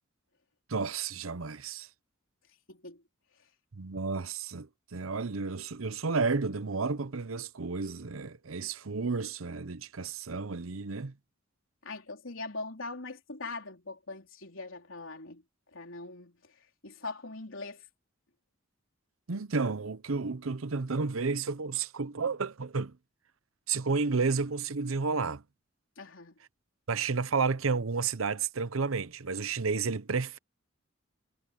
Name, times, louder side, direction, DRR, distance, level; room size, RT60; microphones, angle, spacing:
voice 1, 0.7-1.9 3.7-11.1 19.3-23.0 23.7-25.4 26.9-30.4, right 4 dB, 90° right, 0.8 m, -31 dB
voice 2, 2.7-3.0 11.8-15.4 15.7-16.4 16.8-17.8 26.0-26.4, left 3 dB, 70° left, 4.1 m, -41 dB
head